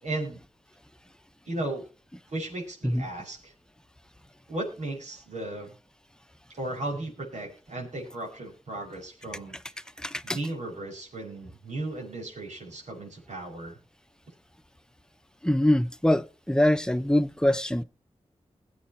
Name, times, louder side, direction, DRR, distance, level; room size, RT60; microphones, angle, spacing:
voice 1, 0.0-0.4 1.5-1.9 2.3-3.5 4.5-5.7 6.5-9.6 10.2-13.8, right 2 dB, 85° right, 5.7 m, -35 dB
voice 2, 10.0-10.4 15.4-17.8, left 1 dB, 5° left, 0.9 m, -24 dB
21.0 x 8.5 x 2.9 m
cardioid pair, 55°, 12 cm